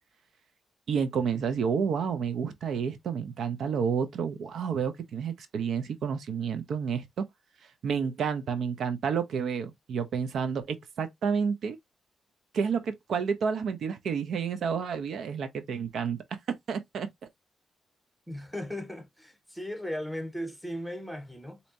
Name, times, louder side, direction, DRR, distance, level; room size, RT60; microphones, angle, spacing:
voice 1, 0.9-7.3 7.8-11.8 12.5-16.2 16.5-17.1, right 6 dB, 75° right, 0.6 m, -30 dB
voice 2, 18.3-21.6, equal, ahead, 1.2 m, -37 dB
4.3 x 2.8 x 2.6 m
cardioid pair, 70°, 0 cm